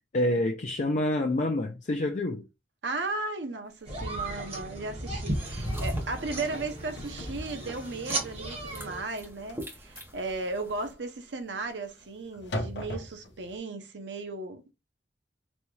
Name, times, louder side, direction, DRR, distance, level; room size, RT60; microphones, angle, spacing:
voice 1, 0.1-2.4, left 1 dB, 45° left, 0.5 m, -27 dB
voice 2, 2.8-14.7, right 3 dB, 80° right, 0.7 m, -36 dB
sound 1, 3.9-9.0, right 1 dB, 35° right, 1.4 m, -34 dB
sound 2, 4.0-4.1 4.5-4.6 5.1-5.3 5.7-6.0 6.3-13.6, left 1 dB, 75° left, 0.8 m, -40 dB
sound 3, 5.3-10.9, equal, 15° right, 0.9 m, -46 dB
4.1 x 2.3 x 3.2 m
head